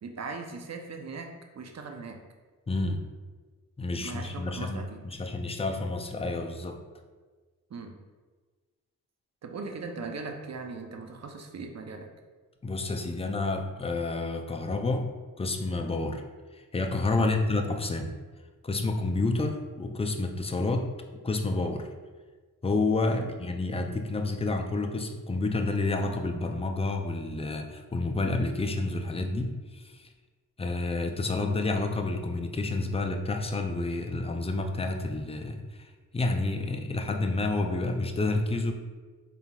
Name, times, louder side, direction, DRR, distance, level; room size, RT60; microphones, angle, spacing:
voice 1, 0.0-2.2 4.0-5.0 7.7-8.0 9.4-12.1 17.2-17.4 23.2-23.3, right 4 dB, 50° right, 4 dB, 0.6 m, -39 dB
voice 2, 2.7-3.0 3.8-4.8 5.0-6.8 12.6-15.1 15.4-16.2 16.5-18.1 18.6-20.9 21.2-21.9 22.6-30.1 30.6-38.7, left 2 dB, 15° left, 4 dB, 0.4 m, -29 dB
4.1 x 3.8 x 2.4 m, 1.4 s
cardioid pair, 60°, 34 cm